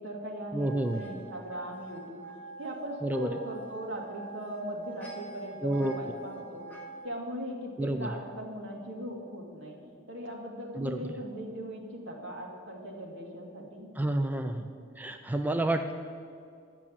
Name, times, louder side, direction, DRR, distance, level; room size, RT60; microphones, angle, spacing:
voice 1, 0.0-2.2 2.6-6.7 7.0-9.8 10.1-13.9, equal, 75° right, -1 dB, 2.1 m, -39 dB
voice 2, 0.5-1.1 3.0-3.4 5.6-5.9 7.8-8.2 10.8-11.2 14.0-14.7 15.0-15.9, right 1 dB, 10° right, 6 dB, 0.4 m, -29 dB
sound 1, 0.6-7.0, right 3 dB, 10° left, 1.6 m, -46 dB
10.5 x 6.1 x 8.5 m, 2.3 s
head